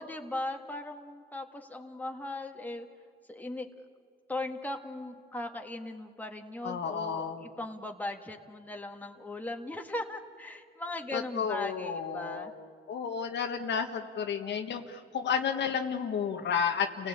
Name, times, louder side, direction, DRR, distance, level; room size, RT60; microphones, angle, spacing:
voice 1, 0.0-2.9 3.3-3.7 4.3-12.5, left 2 dB, 10° left, 3 dB, 1.9 m, -38 dB
voice 2, 6.6-7.4 11.1-12.5 12.9-17.1, left 7 dB, 60° left, 5 dB, 1.6 m, -32 dB
29.5 x 17.5 x 8.8 m, 2.2 s
cardioid pair, 90°, 20 cm